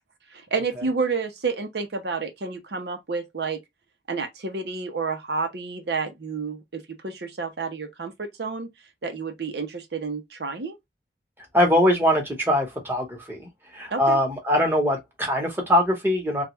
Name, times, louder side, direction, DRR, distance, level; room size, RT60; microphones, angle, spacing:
voice 1, 0.3-3.6 4.1-8.7 9.0-10.8 13.9-14.2, right 4 dB, 75° right, 0.7 m, -30 dB
voice 2, 11.5-16.4, left 1 dB, 10° right, 1.0 m, -22 dB
3.4 x 2.3 x 2.9 m
head